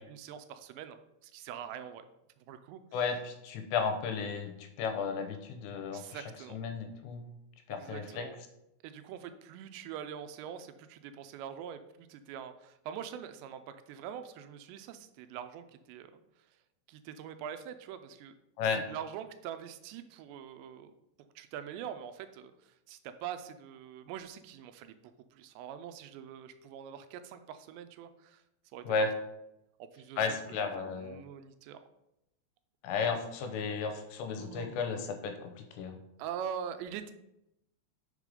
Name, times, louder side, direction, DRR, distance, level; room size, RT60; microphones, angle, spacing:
voice 1, 0.1-2.1 2.5-2.8 5.9-6.6 7.8-8.4 8.8-16.1 16.9-18.3 18.9-20.9 21.4-25.0 25.3-28.4 28.7-28.9 29.8-31.8 34.4-34.8 36.2-37.1, right 8 dB, 85° right, 9 dB, 2.7 m, -44 dB
voice 2, 2.9-6.2 6.5-7.3 7.7-8.3 18.6-18.8 28.9-29.1 30.2-31.2 32.8-36.0, left 5 dB, 80° left, 7 dB, 2.9 m, -34 dB
6.5 x 5.3 x 4.9 m, 0.86 s
omnidirectional pair, 5.1 m